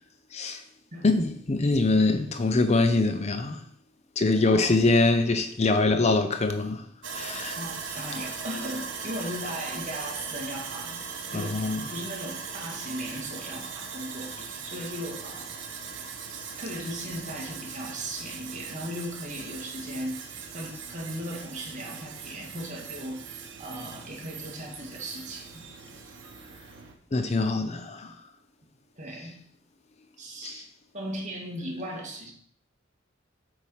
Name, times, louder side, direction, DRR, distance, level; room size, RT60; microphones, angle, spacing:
voice 1, 0.3-0.6 1.0-3.6 4.2-6.8 7.1-7.6 11.3-11.8 27.1-28.2 30.4-30.6, left 3 dB, 35° left, 0.6 m, -24 dB
voice 2, 4.4-4.7 7.6-11.0 11.3-15.6 16.3-25.6 29.0-29.3 30.2-30.7 30.9-32.3, equal, 40° right, 2.4 m, -37 dB
Sawing, 7.0-26.9, right 5 dB, 70° right, 1.3 m, -39 dB
8.4 x 4.7 x 5.7 m
head